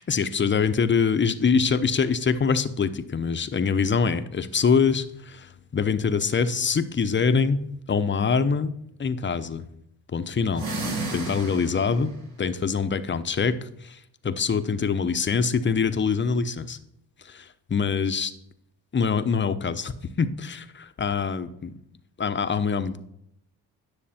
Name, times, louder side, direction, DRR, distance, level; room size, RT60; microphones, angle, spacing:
voice 1, 0.0-7.6 7.9-8.7 9.0-9.7 10.1-10.7 11.1-12.1 12.4-16.8 17.2-18.3 18.9-21.7 22.2-23.0, left 5 dB, 30° left, 11 dB, 0.8 m, -24 dB
sound 1, 10.5-12.1, right 2 dB, 65° right, 3.4 m, -32 dB
10.0 x 6.6 x 4.3 m, 0.76 s
cardioid pair, 75°, 40 cm